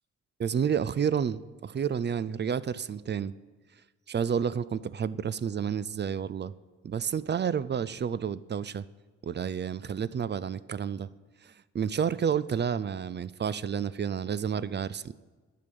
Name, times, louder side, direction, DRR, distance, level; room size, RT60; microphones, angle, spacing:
voice 1, 0.4-3.3 4.1-6.5 6.8-8.8 9.2-11.1 11.4-15.1, right 7 dB, 35° right, 17 dB, 0.4 m, -30 dB
10.0 x 6.7 x 5.3 m, 1.3 s
cardioid pair, 55°, 31 cm